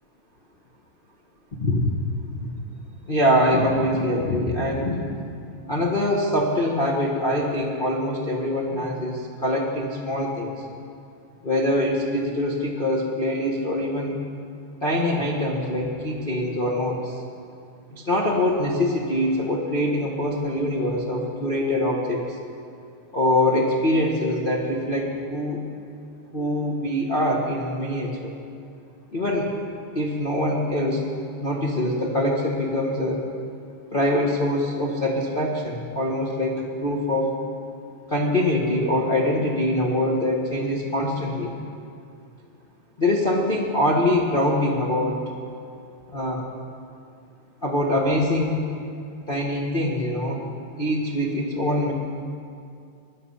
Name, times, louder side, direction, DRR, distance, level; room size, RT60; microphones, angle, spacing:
voice 1, 3.1-5.0 5.6-10.5 11.4-14.2 14.8-17.2 17.9-22.4 23.1-25.6 26.3-28.3 29.1-29.5 29.9-31.0 31.4-33.2 33.9-37.4 38.1-41.5 43.0-45.2 46.1-46.5 47.6-48.6 49.3-50.4 50.8-51.9, left 1 dB, 45° left, -3 dB, 0.6 m, -24 dB
20.5 x 11.5 x 5.6 m, 2.4 s
omnidirectional pair, 3.5 m